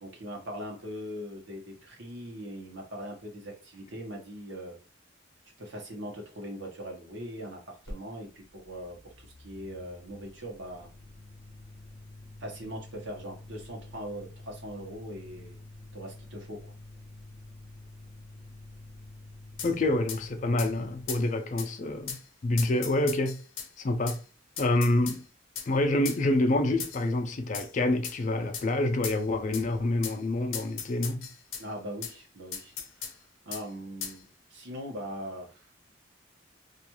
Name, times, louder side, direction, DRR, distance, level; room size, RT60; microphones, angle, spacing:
voice 1, 0.0-4.8 5.6-10.9 12.4-15.6 15.9-16.7 31.6-33.2 33.5-35.9, equal, 70° right, 0.9 m, -41 dB
sound 1, 7.8-21.3, left 2 dB, 15° left, 0.9 m, -48 dB
sound 2, 19.6-19.7 20.1-20.2 20.6-20.7 21.1-21.2 21.6-21.7 22.1-22.2 22.6-23.7 24.1-24.2 24.6-25.2 25.6-25.7 26.1-26.2 26.8-27.1 27.5-27.7 28.0-28.2 28.5-28.7 29.0-29.2 29.5-29.7 30.0-30.2 30.5-31.6 32.0-32.1 32.5-33.1 33.5-33.6 34.0-34.2, left 7 dB, 85° left, 0.6 m, -37 dB
voice 2, 19.6-23.4 23.8-24.2 24.6-25.2 25.7-31.3, left 2 dB, 40° left, 0.4 m, -27 dB
2.4 x 2.3 x 2.9 m
head